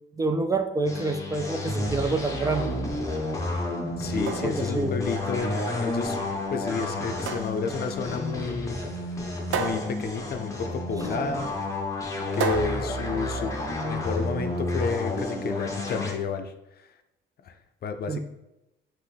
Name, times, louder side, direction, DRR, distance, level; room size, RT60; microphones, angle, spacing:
voice 1, 0.1-2.8 4.4-4.9 18.1-18.2, right 3 dB, 15° right, 6 dB, 0.3 m, -27 dB
sound 1, 0.9-16.1, left 2 dB, 15° left, 1.0 m, -30 dB
voice 2, 4.0-6.2 6.5-8.8 9.5-11.5 12.3-13.5 13.8-16.9 17.4-17.6 17.8-18.2, left 5 dB, 50° left, 8 dB, 0.5 m, -31 dB
sound 2, 4.0-14.0, right 5 dB, 80° right, 0.6 m, -36 dB
5.5 x 3.0 x 3.3 m, 0.93 s
cardioid pair, 90°, 20 cm